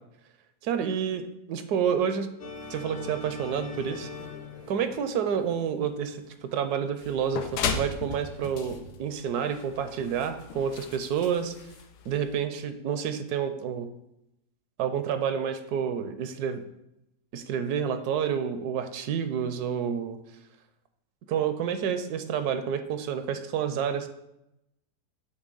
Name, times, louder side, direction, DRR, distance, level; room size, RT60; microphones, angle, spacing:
voice 1, 0.6-2.3 2.7-4.1 4.7-11.5 12.1-13.9 14.8-16.6 17.3-20.2 21.3-24.1, right 7 dB, 75° right, 9 dB, 1.1 m, -29 dB
sound 1, 2.4-6.8, left 4 dB, 55° left, 1.3 m, -43 dB
sound 2, 7.0-12.4, left 6 dB, 85° left, 1.2 m, -35 dB
8.2 x 2.8 x 5.3 m, 0.86 s
omnidirectional pair, 1.7 m